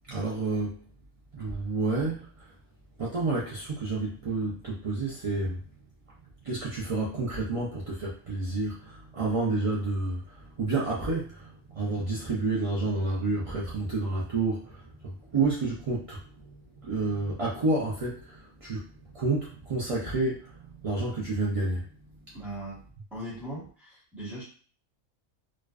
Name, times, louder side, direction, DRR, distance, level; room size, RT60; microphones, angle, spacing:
voice 1, 0.1-0.8 1.3-2.5 3.0-5.6 6.4-21.9, right 3 dB, 65° right, -6 dB, 0.3 m, -30 dB
voice 2, 22.3-22.8 23.1-24.4, right 1 dB, ahead, -8 dB, 1.1 m, -39 dB
2.4 x 2.2 x 2.3 m, 0.41 s
omnidirectional pair, 1.3 m